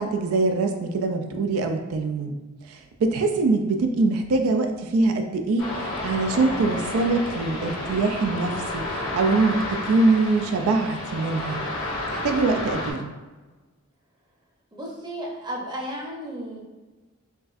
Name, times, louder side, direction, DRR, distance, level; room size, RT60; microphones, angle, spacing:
voice 1, 0.0-2.3 2.7-11.6 12.1-13.1, right 3 dB, 90° right, 5 dB, 0.3 m, -23 dB
sound 1, 5.6-12.9, left 1 dB, 75° left, 1.0 m, -31 dB
voice 2, 14.7-16.6, equal, 20° right, -2 dB, 0.6 m, -33 dB
4.4 x 2.5 x 2.4 m, 1.2 s
head